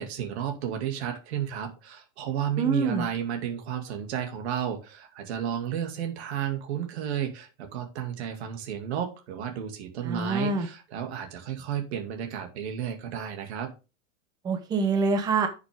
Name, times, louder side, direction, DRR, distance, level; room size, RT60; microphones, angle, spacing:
voice 1, 0.0-13.7, right 9 dB, 60° right, 2.5 m, -32 dB
voice 2, 2.6-3.0 10.0-10.7 14.4-15.5, right 4 dB, 10° right, 0.8 m, -25 dB
11.0 x 6.6 x 3.7 m
supercardioid pair, 170°, 37 cm